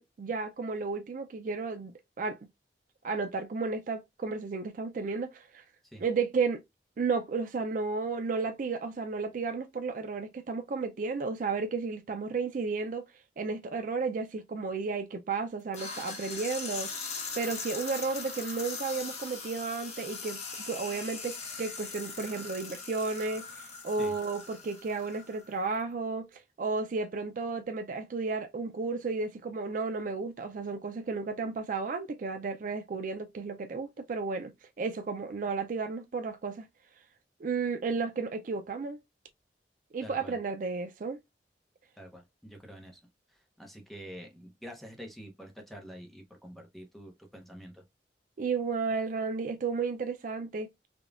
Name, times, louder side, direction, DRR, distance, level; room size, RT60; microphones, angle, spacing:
voice 1, 0.0-1.9 2.2-2.4 3.0-5.6 6.0-6.6 7.0-13.0 13.4-20.4 20.7-34.5 34.8-36.7 37.4-39.0 39.9-41.2 48.4-50.7, right 4 dB, 50° right, 0.4 m, -33 dB
sound 1, 15.7-25.5, left 4 dB, 40° left, 0.9 m, -40 dB
voice 2, 40.0-40.3 42.0-43.0 43.3-47.8, equal, ahead, 0.7 m, -47 dB
5.1 x 2.2 x 2.4 m
head